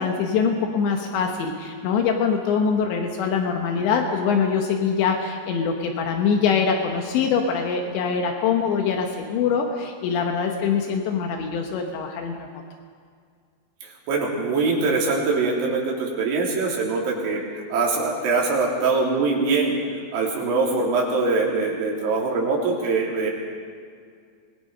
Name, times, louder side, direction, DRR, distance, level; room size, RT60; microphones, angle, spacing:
voice 1, 0.0-12.6, left 6 dB, 75° left, 3 dB, 3.5 m, -23 dB
voice 2, 13.8-17.4 17.7-19.8 20.1-23.3, right 3 dB, 85° right, -2 dB, 5.7 m, -23 dB
24.5 x 21.5 x 5.4 m, 2.1 s
omnidirectional pair, 5.3 m